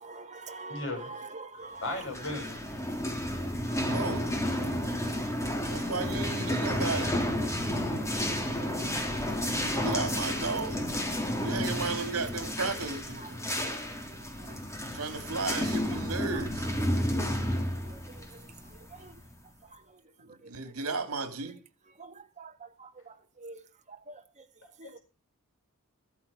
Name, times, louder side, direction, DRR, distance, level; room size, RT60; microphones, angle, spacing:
voice 1, 0.0-1.8 9.4-9.5 17.2-17.5 19.0-19.1 22.0-22.5 22.8-23.1 23.4-23.6 24.1-24.2, right 3 dB, 35° right, 1.6 m, -44 dB
voice 2, 0.7-1.1 1.8-2.6 9.2-9.4 24.8-25.0, left 2 dB, 60° left, 7.7 m, -36 dB
sound 1, 2.0-19.4, equal, 15° left, 3.2 m, -31 dB
voice 3, 3.9-4.6 5.7-7.2 9.4-10.8 11.1-13.4 14.9-16.7 20.4-21.5, right 4 dB, 75° right, 2.8 m, -34 dB
14.5 x 13.5 x 5.6 m
head